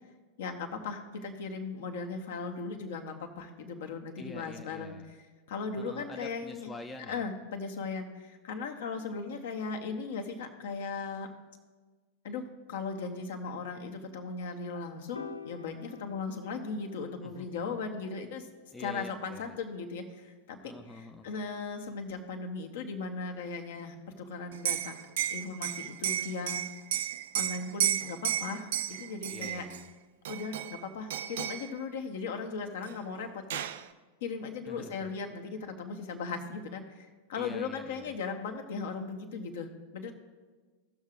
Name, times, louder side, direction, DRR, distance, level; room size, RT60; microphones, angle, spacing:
voice 1, 0.4-5.2 5.5-6.7 7.1-11.3 12.2-18.5 18.8-20.6 20.9-24.9 25.3-26.6 27.3-29.6 30.3-33.6 34.2-40.1, left 4 dB, 55° left, 4 dB, 1.0 m, -38 dB
voice 2, 4.2-5.1 5.8-7.3 17.2-17.5 18.7-19.6 20.6-21.3 29.3-29.9 34.7-35.1 37.3-38.1, left 2 dB, 10° left, 4 dB, 0.6 m, -46 dB
Piano, 15.1-21.5, left 5 dB, 80° left, 0.4 m, -51 dB
Liquid, 24.5-29.8 30.3-30.8 31.1-31.7 32.9-33.0 33.2-33.8, right 11 dB, 55° right, 0.4 m, -33 dB
17.0 x 6.4 x 2.5 m, 1.4 s
figure-of-eight pair, 90°, 0 cm